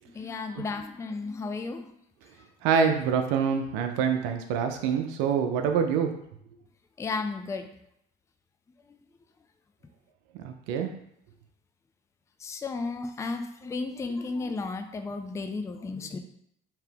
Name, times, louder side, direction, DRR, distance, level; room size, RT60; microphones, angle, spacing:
voice 1, 0.1-1.9 7.0-7.7 12.4-16.2, left 3 dB, 15° left, 7 dB, 0.4 m, -33 dB
voice 2, 2.6-6.1 10.4-10.9, right 6 dB, 80° right, 5 dB, 0.4 m, -25 dB
3.3 x 2.8 x 3.4 m, 0.72 s
supercardioid pair, 80°, 19 cm